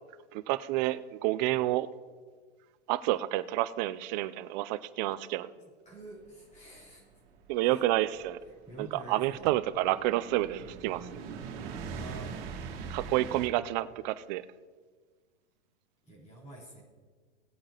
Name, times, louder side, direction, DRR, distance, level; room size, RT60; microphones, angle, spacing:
voice 1, 0.3-1.9 2.9-5.5 7.5-8.4 8.8-11.1 12.9-14.4, right 16 dB, 40° right, 16 dB, 0.5 m, -29 dB
voice 2, 5.6-7.0 7.6-7.8 8.7-9.5 11.9-12.4 16.1-16.8, right 1 dB, 20° left, -5 dB, 3.7 m, -47 dB
Train passing, 6.5-13.5, right 5 dB, 55° right, 1.8 m, -43 dB
18.5 x 8.7 x 2.9 m, 1.5 s
hypercardioid pair, 115°, 36 cm